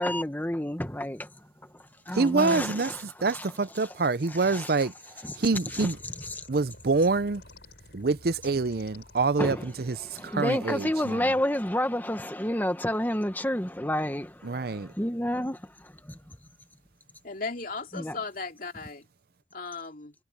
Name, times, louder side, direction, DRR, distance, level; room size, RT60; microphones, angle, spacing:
voice 1, 0.0-3.0 3.3-3.5 4.5-4.7 5.2-5.4 5.7-5.9 6.4-6.5 9.4-9.6 10.0-16.4 17.9-18.2, left 1 dB, 10° left, 1.4 m, -30 dB
voice 2, 2.1-6.0 6.5-7.4 7.9-11.3 14.4-14.9, right 3 dB, 55° right, 0.6 m, -26 dB
sound 1, 5.7-11.7, left 2 dB, 65° left, 4.5 m, -52 dB
voice 3, 17.2-19.1 19.5-20.1, left 4 dB, 50° left, 2.7 m, -36 dB
head